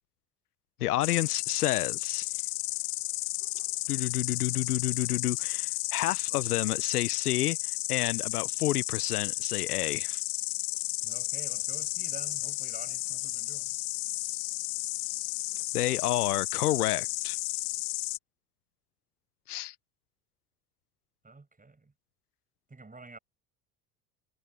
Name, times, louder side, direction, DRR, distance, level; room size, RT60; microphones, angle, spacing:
voice 1, 0.8-2.3 3.9-10.2 15.7-17.4 19.5-19.7, left 14 dB, 90° left, 0.8 m, -30 dB
Insect, 1.0-18.2, left 26 dB, 65° left, 1.0 m, -33 dB
voice 2, 11.0-13.8 21.2-21.9 22.7-23.2, right 3 dB, 20° right, 7.1 m, -49 dB
hypercardioid pair, 65°, 44 cm